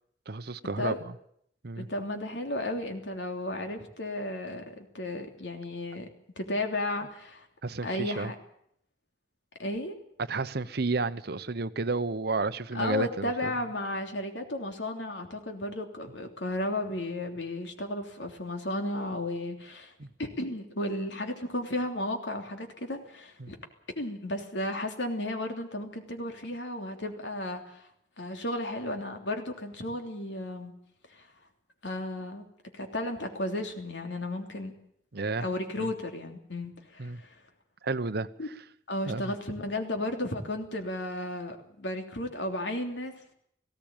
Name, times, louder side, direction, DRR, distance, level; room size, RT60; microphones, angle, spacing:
voice 1, 0.3-0.9 1.6-1.9 7.6-8.3 10.3-13.5 20.0-20.1 23.4-23.5 35.1-35.5 35.8-35.9 37.0-37.2 37.8-38.3 39.1-39.3, right 3 dB, 65° right, 0.9 m, -31 dB
voice 2, 1.8-6.1 6.4-7.5 7.8-8.3 9.6-9.9 12.7-19.9 20.2-23.6 23.9-27.9 28.2-30.7 31.1-31.3 31.8-32.5 32.7-34.7 35.4-37.3 38.4-38.5 38.9-43.1, left 1 dB, 90° left, 3.2 m, -34 dB
19.0 x 16.5 x 9.0 m
head